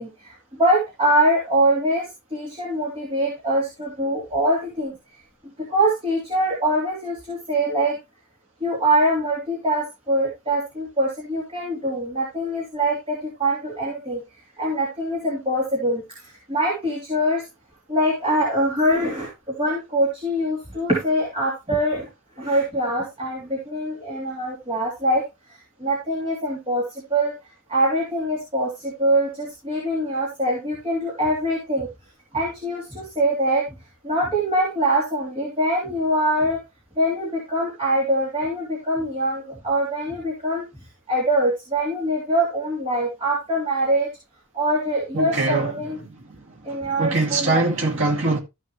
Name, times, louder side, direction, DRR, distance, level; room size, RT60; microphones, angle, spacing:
voice 1, 0.0-4.9 5.6-8.0 8.6-14.2 14.6-17.4 17.9-22.1 22.4-25.2 25.8-27.3 27.7-31.9 32.3-33.6 34.0-36.6 37.0-40.6 41.1-44.1 44.5-46.0 46.6-47.7, right 1 dB, 25° right, 3.2 m, -23 dB
voice 2, 45.1-45.7 47.0-48.4, right 3 dB, 60° right, 2.5 m, -22 dB
14.0 x 6.6 x 3.0 m
head